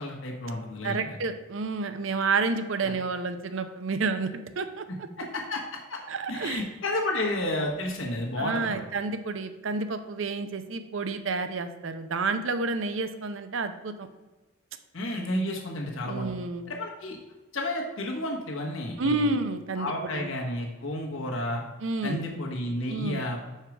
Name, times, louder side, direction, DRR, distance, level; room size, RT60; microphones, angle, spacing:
voice 1, 0.0-1.2 2.8-2.9 5.2-5.6 5.9-6.0 6.3-8.8 14.9-16.3 16.7-17.2 17.5-19.3 19.8-21.6 22.0-23.5, left 1 dB, 70° left, -1 dB, 1.3 m, -31 dB
voice 2, 0.8-4.8 6.1-6.6 8.4-14.1 16.0-16.7 19.0-20.3 21.8-22.2 22.9-23.2, right 3 dB, 70° right, 9 dB, 0.6 m, -30 dB
5.7 x 4.6 x 6.0 m, 1.2 s
head